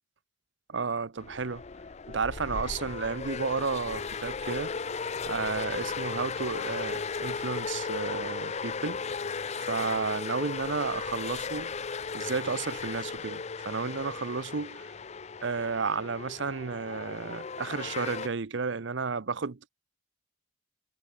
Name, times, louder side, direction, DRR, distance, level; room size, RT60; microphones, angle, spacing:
voice 1, 0.7-1.6 2.1-4.7 5.2-9.0 9.5-11.7 12.1-14.7 15.4-19.7, right 4 dB, 60° right, 0.7 m, -32 dB
sound 1, 1.2-18.3, left 5 dB, 35° left, 0.5 m, -36 dB
head